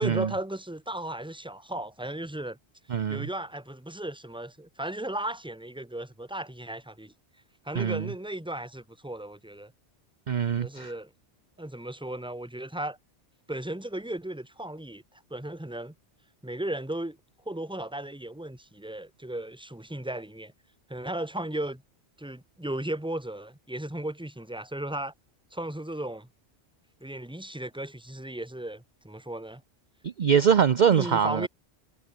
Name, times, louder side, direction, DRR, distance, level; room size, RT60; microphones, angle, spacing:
voice 1, 0.0-2.6 3.1-7.1 7.6-9.7 10.6-11.1 11.6-13.0 13.5-15.0 15.3-15.9 16.4-17.2 17.4-20.5 20.9-21.8 22.2-25.1 25.5-26.3 27.0-29.6 30.9-31.5, right 1 dB, 5° right, 1.6 m, -35 dB
voice 2, 2.9-3.3 7.7-8.1 10.3-10.9 30.0-31.5, right 7 dB, 45° right, 0.8 m, -23 dB
omnidirectional pair, 1.1 m